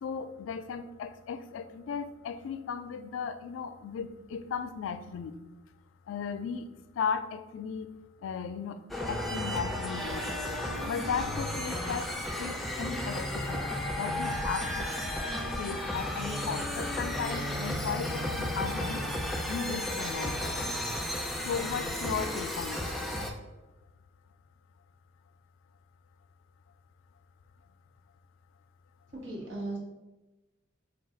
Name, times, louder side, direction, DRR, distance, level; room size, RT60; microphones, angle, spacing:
voice 1, 0.0-5.4 6.1-6.6 7.0-7.9 8.2-8.8 9.1-10.4 10.8-12.1 12.4-14.9 15.6-19.0 19.5-20.3 20.6-20.8 21.5-22.9, left 6 dB, 85° left, 11 dB, 0.3 m, -36 dB
sound 1, 8.9-23.3, left 1 dB, ahead, 0.3 m, -33 dB
voice 2, 29.1-29.8, right 2 dB, 80° right, -3 dB, 1.2 m, -37 dB
4.0 x 2.2 x 3.7 m, 1.1 s
head